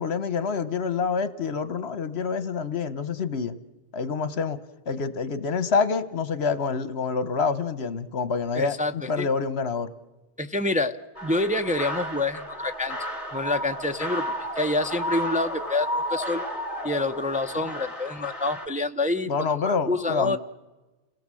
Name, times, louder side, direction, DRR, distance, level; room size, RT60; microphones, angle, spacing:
voice 1, 0.0-3.6 3.9-4.6 4.9-9.9 19.3-20.4, left 5 dB, 70° left, 14 dB, 1.3 m, -27 dB
voice 2, 8.6-9.3 10.4-11.0 11.2-13.0 13.3-16.4 16.8-20.4, left 2 dB, 10° right, 7 dB, 0.7 m, -27 dB
sound 1, 11.1-18.7, equal, 30° left, 2.9 m, -33 dB
29.5 x 18.0 x 7.6 m, 1.1 s
omnidirectional pair, 1.1 m